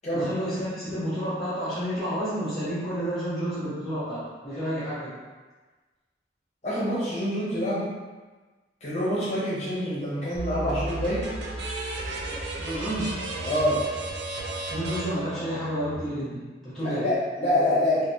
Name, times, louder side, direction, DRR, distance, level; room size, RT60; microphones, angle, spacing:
voice 1, 0.1-5.2 12.3-13.1 14.7-17.0, equal, ahead, -13 dB, 0.8 m, -30 dB
voice 2, 6.6-7.9 8.8-11.3 13.4-13.8 16.8-18.1, left 1 dB, 40° left, -9 dB, 0.9 m, -26 dB
sound 1, 10.3-16.0, right 2 dB, 80° right, 0.5 m, -34 dB
3.3 x 2.2 x 2.7 m, 1.3 s
head